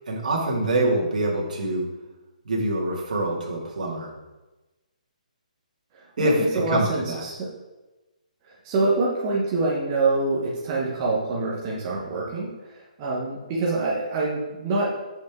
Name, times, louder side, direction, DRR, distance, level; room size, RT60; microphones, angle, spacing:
voice 1, 0.1-1.9 2.5-4.1 6.2-7.2, right 1 dB, 70° right, -3 dB, 2.1 m, -25 dB
voice 2, 5.9-7.5 8.4-14.9, right 3 dB, 25° right, -4 dB, 1.0 m, -26 dB
7.0 x 5.3 x 3.6 m, 1.1 s
hypercardioid pair, 165°, 4 cm